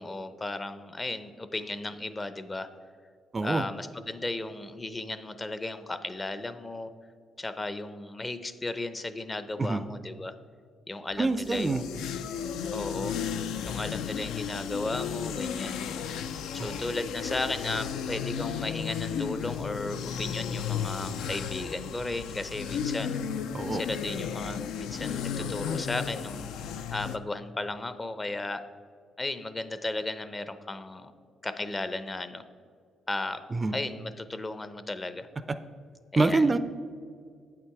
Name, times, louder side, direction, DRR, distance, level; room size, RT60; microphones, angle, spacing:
voice 1, 0.0-2.7 3.4-6.9 7.4-10.3 10.9-12.0 12.7-13.2 13.6-15.8 16.5-23.2 23.7-28.7 29.2-31.1 31.4-32.4 33.1-33.5 33.7-35.3 36.1-36.5, left 2 dB, 25° left, 12 dB, 0.5 m, -35 dB
sound 1, 11.2-27.2, left 7 dB, 85° left, 0.3 m, -34 dB
voice 2, 11.2-11.8 16.6-16.8 23.5-23.8 33.5-33.8 36.2-36.6, right 3 dB, 30° right, 12 dB, 0.3 m, -26 dB
8.1 x 5.8 x 4.7 m, 2.1 s
cardioid pair, 90°, 0 cm